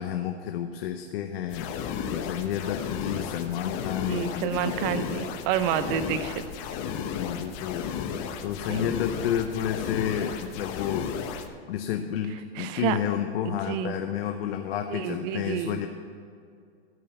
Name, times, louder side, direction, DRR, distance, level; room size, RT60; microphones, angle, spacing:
voice 1, 0.0-5.0 6.9-7.9 8.4-11.1 11.7-15.9, left 10 dB, 65° left, 6 dB, 0.8 m, -31 dB
sound 1, 1.5-11.5, left 7 dB, 40° left, 1.0 m, -34 dB
voice 2, 4.1-6.4 8.7-8.9 12.6-13.0 13.4-13.9 14.9-15.8, right 10 dB, 45° right, 12 dB, 0.7 m, -29 dB
13.0 x 5.6 x 7.0 m, 2.3 s
hypercardioid pair, 120°, 32 cm